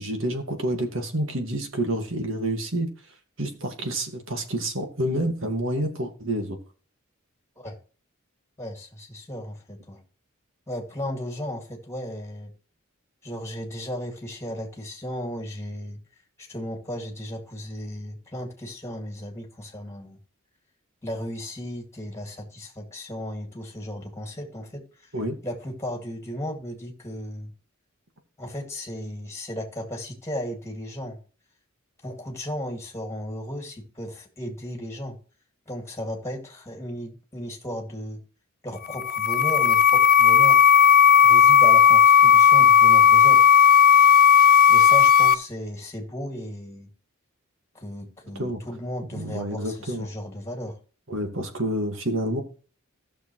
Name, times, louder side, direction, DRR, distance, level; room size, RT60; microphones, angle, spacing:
voice 1, 0.0-2.9 3.4-6.6 25.1-25.4 48.4-48.6 49.1-50.1 51.1-52.4, right 1 dB, 65° right, 2.0 m, -28 dB
voice 2, 8.6-10.0 10.7-12.5 13.2-16.0 16.4-20.2 21.0-25.1 25.4-27.5 28.4-31.2 32.0-35.2 35.7-38.2 38.6-40.7 41.2-43.6 44.7-46.9 47.7-50.8, equal, 15° left, 2.3 m, -35 dB
sound 1, 38.8-45.3, left 8 dB, 40° left, 0.4 m, -15 dB
15.5 x 6.7 x 3.2 m
head